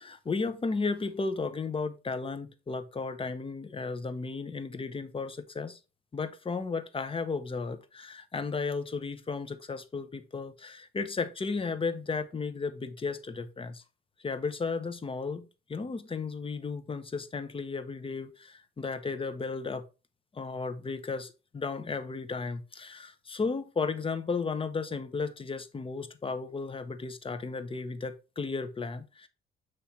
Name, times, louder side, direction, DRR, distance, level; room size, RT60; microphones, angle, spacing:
voice 1, 0.0-5.8 6.1-13.8 14.2-19.8 20.3-29.3, left 4 dB, 25° left, 0.9 m, -34 dB
7.3 x 3.3 x 4.2 m
cardioid pair, 90°, 20 cm